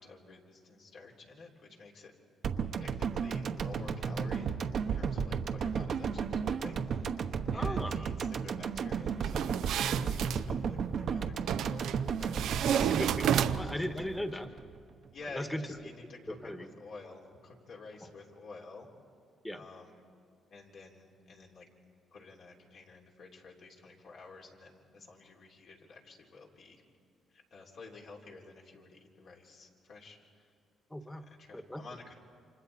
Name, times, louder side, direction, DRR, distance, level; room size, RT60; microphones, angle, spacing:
voice 1, 0.0-2.1 2.8-6.8 7.5-11.9 12.2-12.6 13.4-13.8 14.1-14.2 15.1-18.9 19.5-19.9 20.5-21.7 22.1-26.8 27.5-30.2 31.4-32.1, left 3 dB, 65° left, -1 dB, 3.5 m, -51 dB
sound 1, 2.4-14.8 15.1-15.2, right 6 dB, 60° right, 1.1 m, -34 dB
voice 2, 7.5-7.9 12.7-14.5 15.3-15.7 16.3-16.7 18.0-18.1 19.4-19.6 30.9-31.2 31.5-31.9, equal, 10° left, 7 dB, 1.5 m, -38 dB
sound 2, 9.2-10.4 11.5-12.0 12.3-13.8, right 10 dB, 80° right, 0.5 m, -31 dB
29.0 x 26.0 x 4.3 m, 2.4 s
cardioid pair, 90°, 0 cm